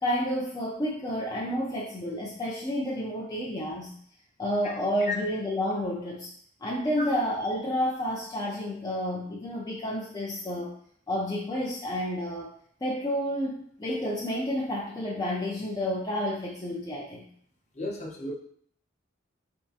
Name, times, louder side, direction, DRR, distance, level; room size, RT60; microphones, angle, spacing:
voice 1, 0.0-3.9 4.4-6.3 6.6-10.7 11.1-12.5 12.8-17.2, equal, 20° left, -4 dB, 0.5 m, -30 dB
voice 2, 17.8-18.3, left 3 dB, 40° left, -1 dB, 0.8 m, -33 dB
4.0 x 3.5 x 2.7 m, 0.62 s
head